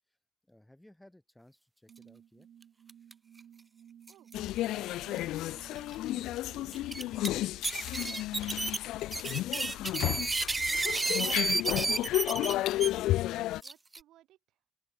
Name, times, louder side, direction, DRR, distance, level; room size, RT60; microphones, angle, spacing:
voice 1, 0.5-2.5, left 1 dB, 5° left, 3.0 m, -59 dB
sound 1, 1.9-8.9, right 9 dB, 65° right, 2.5 m, -57 dB
sound 2, 2.9-3.1 3.4-3.5 4.1-4.3 5.2-5.3 5.8-5.9 6.7-7.3 7.6-12.9 13.6-14.0, right 3 dB, 20° right, 0.3 m, -31 dB
voice 2, 4.1-5.3 5.5-6.9 7.8-8.6 9.2-10.3 11.0-12.9 13.6-14.6, right 14 dB, 85° right, 4.2 m, -64 dB
sound 3, 4.3-13.6, left 15 dB, 90° left, 0.3 m, -32 dB
open air
cardioid pair, 90°, 0 cm